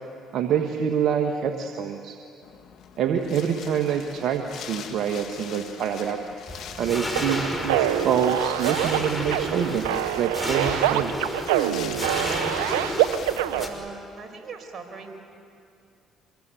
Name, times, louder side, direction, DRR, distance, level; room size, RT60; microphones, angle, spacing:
voice 1, 0.3-2.2 3.0-6.2 6.8-9.9 10.2-11.1, right 8 dB, 65° right, 4 dB, 1.5 m, -26 dB
Wind, 2.4-13.6, left 8 dB, 65° left, 2.2 m, -42 dB
sound 1, 6.5-13.7, left 1 dB, 10° left, 5.3 m, -32 dB
sound 2, 7.2-13.7, right 13 dB, 90° right, 0.7 m, -25 dB
voice 2, 13.5-15.2, right 4 dB, 45° right, 4 dB, 5.1 m, -40 dB
26.0 x 21.5 x 9.1 m, 2.5 s
supercardioid pair, 65°, 0 cm